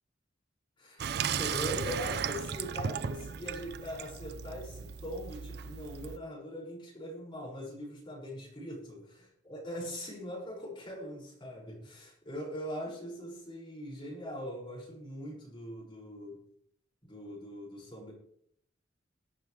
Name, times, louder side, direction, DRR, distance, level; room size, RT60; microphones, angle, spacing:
voice 1, 0.8-16.4 17.0-18.1, equal, 25° left, -5 dB, 6.6 m, -41 dB
Water tap faucet / Sink (filling or washing), 1.0-6.2, right 7 dB, 55° right, 0.5 m, -36 dB
21.0 x 9.5 x 3.5 m, 0.66 s
head